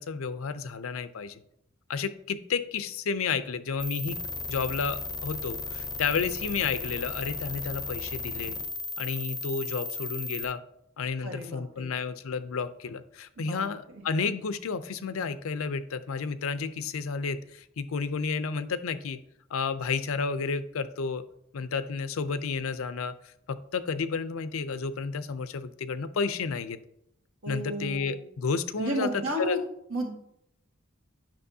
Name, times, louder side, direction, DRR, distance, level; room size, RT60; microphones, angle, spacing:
voice 1, 0.0-1.4 1.9-4.2 4.5-8.6 9.0-10.6 11.0-19.2 19.5-21.3 21.5-26.8 27.5-29.6, left 5 dB, 80° left, 13 dB, 0.5 m, -31 dB
sound 1, 3.8-10.4, left 3 dB, 20° left, 0.6 m, -35 dB
voice 2, 11.2-11.9 13.4-14.0 27.4-28.3 28.8-29.6 29.9-30.2, right 1 dB, 65° right, 1 dB, 1.6 m, -33 dB
10.0 x 5.9 x 2.7 m, 0.77 s
head